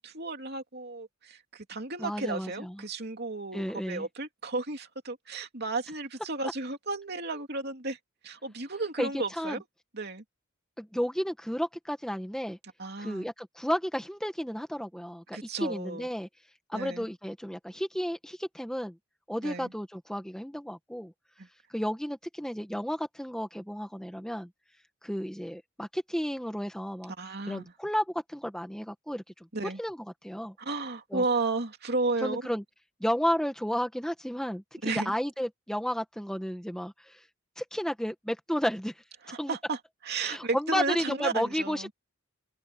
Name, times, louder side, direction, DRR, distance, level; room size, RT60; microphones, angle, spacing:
voice 1, 0.0-8.0 8.2-9.6 9.9-10.2 12.8-13.2 15.3-16.1 16.7-17.1 19.4-19.7 21.4-21.5 27.2-27.7 29.5-29.8 30.6-32.4 34.8-35.1 39.3-39.8 40.0-41.9, right 3 dB, 50° right, 2.9 m, -33 dB
voice 2, 2.0-2.8 3.5-4.1 9.0-9.6 10.8-12.6 13.0-16.3 16.7-18.9 19.3-21.1 21.7-24.5 25.0-27.1 27.5-29.2 29.8-30.5 31.1-31.2 32.2-32.6 33.0-34.6 34.9-37.2 37.6-38.9 39.4-39.6 40.2-41.9, equal, 5° left, 1.4 m, -32 dB
head